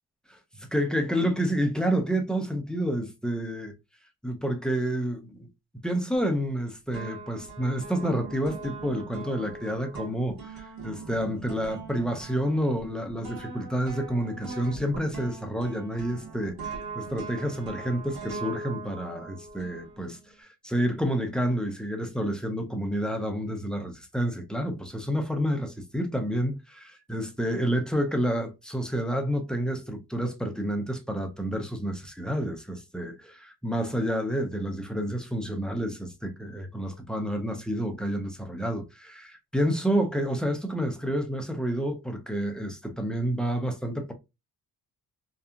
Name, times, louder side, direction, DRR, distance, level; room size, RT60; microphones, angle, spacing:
voice 1, 0.3-3.7 4.2-5.5 5.8-10.5 10.8-44.1, equal, ahead, 0.5 m, -29 dB
sound 1, 6.1-6.6 6.9-20.3, right 4 dB, 70° right, 1.4 m, -41 dB
2.7 x 2.4 x 2.3 m
cardioid pair, 100°, 38 cm